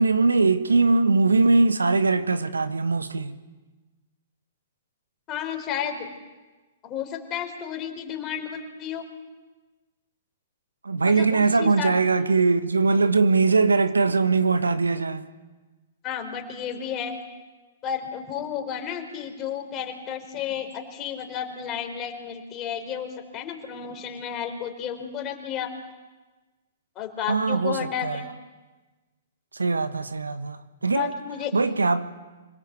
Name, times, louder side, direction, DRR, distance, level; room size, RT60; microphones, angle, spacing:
voice 1, 0.0-3.4 10.8-15.2 27.3-28.2 29.5-31.1 31.5-32.1, right 4 dB, 90° right, 1.2 m, -21 dB
voice 2, 5.3-6.1 6.8-9.0 11.0-11.9 16.0-17.1 17.8-25.7 27.0-28.2 30.9-31.5, left 8 dB, 30° left, 4.3 m, -32 dB
26.0 x 18.5 x 8.3 m
hypercardioid pair, 115°, 0 cm